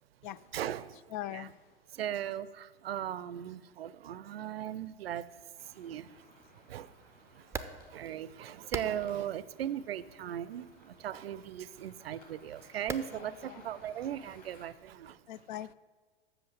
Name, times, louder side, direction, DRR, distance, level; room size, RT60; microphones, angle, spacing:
voice 1, 0.5-1.0 1.3-1.5 1.9-5.3 5.6-6.3 6.5-15.2, right 10 dB, 80° right, 0.5 m, -38 dB
voice 2, 1.1-1.6 13.1-13.7 15.3-15.7, left 13 dB, 55° left, 0.4 m, -41 dB
sound 1, 5.5-14.7, left 1 dB, 30° left, 3.4 m, -60 dB
sound 2, 7.4-15.2, right 4 dB, 10° right, 0.5 m, -46 dB
7.9 x 6.5 x 7.9 m
hypercardioid pair, 100°, 30 cm